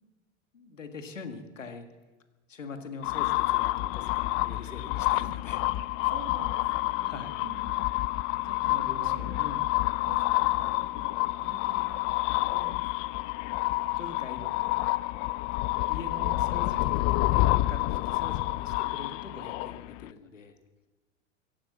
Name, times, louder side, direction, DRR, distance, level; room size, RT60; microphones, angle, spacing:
voice 1, 0.5-1.9 2.5-5.7 7.0-7.4 8.7-9.7 14.0-14.7 15.9-20.6, left 4 dB, 85° left, 7 dB, 1.7 m, -43 dB
sound 1, 3.0-20.1, left 19 dB, 35° left, 0.4 m, -28 dB
voice 2, 5.7-9.5 10.0-13.2 17.1-17.5 19.4-19.5, right 6 dB, 45° right, 5 dB, 2.4 m, -49 dB
16.0 x 11.0 x 7.3 m, 1.2 s
hypercardioid pair, 85°, 37 cm